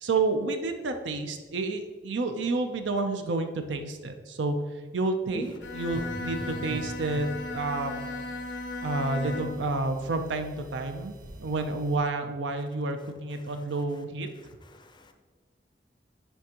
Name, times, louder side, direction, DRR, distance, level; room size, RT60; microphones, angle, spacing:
voice 1, 0.0-4.5 4.9-8.2 8.8-14.3, right 3 dB, 85° right, 7 dB, 0.6 m, -30 dB
Bowed string instrument, 5.5-9.7, left 2 dB, 75° left, 0.6 m, -36 dB
sound 1, 5.6-12.0, right 1 dB, 45° right, 1.0 m, -44 dB
voice 2, 14.4-15.1, equal, 25° left, 7 dB, 0.5 m, -43 dB
9.8 x 3.5 x 2.9 m, 1.3 s
head